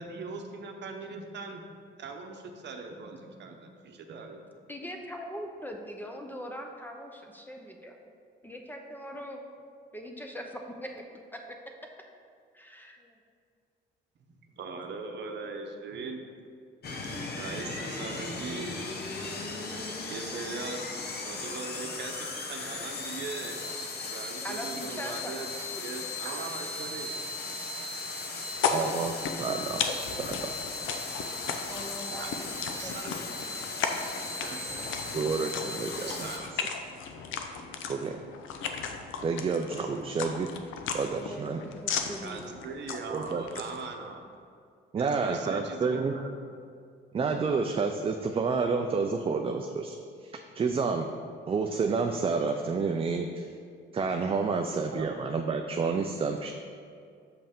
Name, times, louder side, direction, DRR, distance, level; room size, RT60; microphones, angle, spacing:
voice 1, 0.0-1.6 2.0-4.4 14.3-16.2 17.1-19.0 19.7-19.8 20.1-20.8 21.2-23.6 24.1-25.5 25.8-27.1 32.1-32.3 32.8-33.2 34.4-35.0 36.1-36.6 42.2-44.2 45.0-46.3 54.9-55.0, right 4 dB, 60° right, 3 dB, 0.8 m, -40 dB
voice 2, 4.7-8.0 8.4-9.4 9.9-10.9 11.3-11.4 12.5-13.2 24.4-25.4 27.4-27.7 31.7-32.5 32.8-33.3 35.4-35.5 41.1-41.5 41.8-42.5, equal, 10° left, 2 dB, 0.7 m, -41 dB
sound 1, 16.8-36.4, left 3 dB, 55° left, 0.9 m, -37 dB
sound 2, 28.5-43.9, left 6 dB, 85° left, 0.6 m, -36 dB
voice 3, 28.7-29.8 30.2-30.4 35.1-36.1 36.6-36.7 37.9-38.1 39.2-40.5 40.9-41.6 43.1-43.4 44.9-46.1 47.1-50.0 50.2-51.1 51.5-53.5 53.9-56.5, right 4 dB, 30° right, 4 dB, 0.4 m, -29 dB
6.7 x 5.4 x 3.6 m, 2.3 s
cardioid pair, 90°, 20 cm